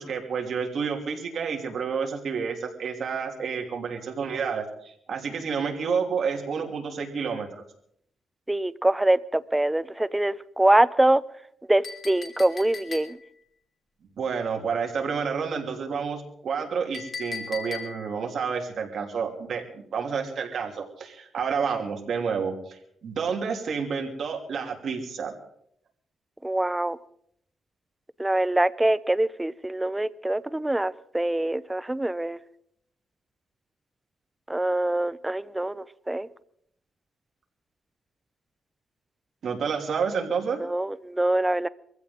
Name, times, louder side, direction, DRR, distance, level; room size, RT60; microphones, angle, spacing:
voice 1, 0.0-7.5 14.2-25.3 39.4-40.6, right 6 dB, 60° right, 2.8 m, -29 dB
voice 2, 8.5-11.2 11.7-13.2 26.4-27.0 28.2-32.4 34.5-36.3 40.6-41.7, right 1 dB, 10° right, 0.5 m, -24 dB
Chink clink, 11.8-13.4 16.9-18.2, left 5 dB, 45° left, 2.8 m, -38 dB
22.5 x 15.5 x 3.8 m
cardioid pair, 125°, 0 cm